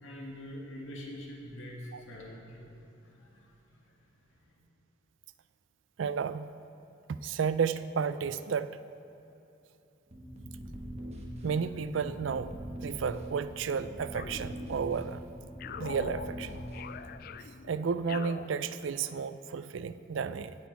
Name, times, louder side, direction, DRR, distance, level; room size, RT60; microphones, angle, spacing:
voice 1, 0.0-3.8 4.4-4.6, equal, 85° left, -2 dB, 1.9 m, -45 dB
voice 2, 6.0-6.5 7.2-8.7 11.4-12.5 12.8-15.2 15.8-16.5 17.7-20.5, right 6 dB, 75° right, 13 dB, 0.4 m, -32 dB
sound 1, 10.1-17.1, equal, 35° right, 1.4 m, -42 dB
sound 2, 14.1-15.1 15.6-19.2, left 7 dB, 50° left, 0.3 m, -44 dB
17.0 x 6.2 x 4.6 m, 2.9 s
head